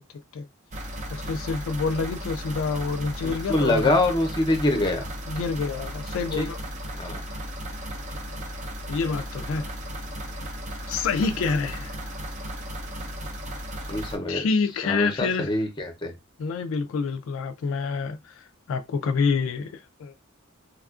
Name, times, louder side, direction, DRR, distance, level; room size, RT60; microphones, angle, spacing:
sound 1, 0.7-14.2, equal, 35° right, 0.5 m, -35 dB
voice 1, 1.1-3.9 5.3-6.6 8.9-9.7 10.9-12.0 14.3-15.5 16.4-20.1, left 4 dB, 70° left, 0.3 m, -27 dB
voice 2, 3.2-5.1 6.4-6.5 7.0-7.2 13.9-14.5 14.8-16.1, left 2 dB, 20° left, 0.6 m, -24 dB
3.4 x 2.3 x 2.4 m
head